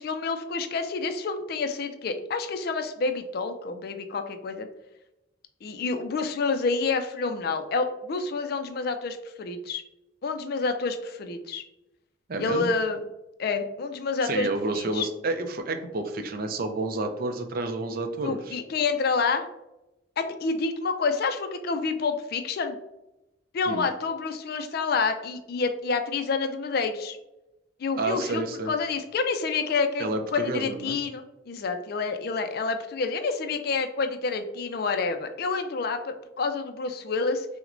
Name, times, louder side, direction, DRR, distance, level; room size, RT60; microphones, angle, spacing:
voice 1, 0.0-4.7 5.6-9.8 10.2-11.6 12.4-13.0 13.4-15.1 18.2-19.5 20.2-22.8 23.5-27.2 27.8-37.5, left 4 dB, 55° left, 8 dB, 0.4 m, -28 dB
voice 2, 12.3-12.7 14.2-18.6 23.7-23.8 28.0-28.7 30.0-31.0, right 2 dB, 50° right, 6 dB, 0.4 m, -30 dB
5.8 x 2.1 x 2.5 m, 0.94 s
head